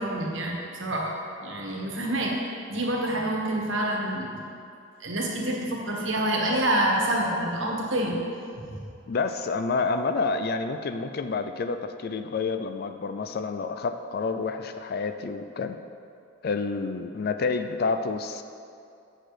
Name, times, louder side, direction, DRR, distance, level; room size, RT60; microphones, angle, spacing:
voice 1, 0.0-2.4 2.7-4.3 5.0-8.2 8.5-8.6, right 1 dB, 70° right, -1 dB, 1.4 m, -27 dB
voice 2, 9.1-15.8 16.4-18.4, left 4 dB, 50° left, 9 dB, 0.4 m, -29 dB
7.7 x 6.6 x 4.9 m, 2.5 s
head